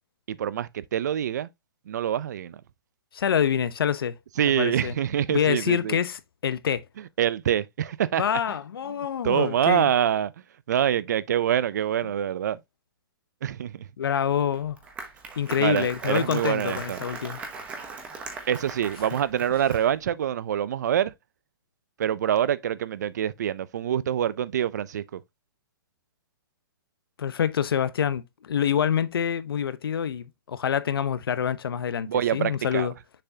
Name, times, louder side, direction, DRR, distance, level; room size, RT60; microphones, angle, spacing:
voice 1, 0.3-1.5 1.9-2.6 4.4-6.0 7.2-8.2 9.2-10.3 10.7-12.6 13.4-13.9 15.6-17.0 18.5-21.1 22.0-25.2 32.1-32.9, right 10 dB, 50° right, 0.5 m, -25 dB
voice 2, 3.1-4.2 4.4-5.0 5.3-6.8 8.2-9.9 14.0-14.8 15.4-17.4 27.2-32.9, left 8 dB, 80° left, 0.9 m, -26 dB
Applause, 14.5-20.0, right 4 dB, 10° right, 1.0 m, -39 dB
6.8 x 5.7 x 2.7 m
hypercardioid pair, 175°, 12 cm